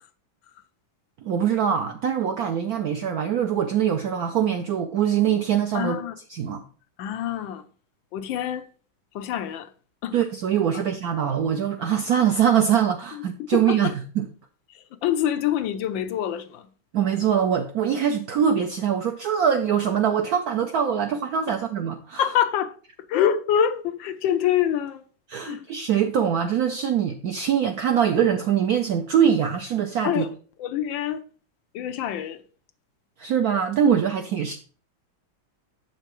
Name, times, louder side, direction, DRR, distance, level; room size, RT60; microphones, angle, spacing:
voice 1, 1.2-6.0 6.3-6.6 10.1-14.3 16.9-22.2 25.3-30.3 33.2-34.6, right 8 dB, 75° right, 0.8 m, -23 dB
voice 2, 5.7-6.1 7.0-7.6 8.1-8.7 9.1-9.7 10.0-10.1 10.7-10.8 13.1-13.2 13.5-13.9 14.7-16.7 22.2-22.7 23.1-25.0 25.4-25.7 30.0-30.3 30.6-31.2 31.7-32.4, left 10 dB, 75° left, 1.3 m, -25 dB
7.5 x 6.9 x 3.0 m
omnidirectional pair, 2.2 m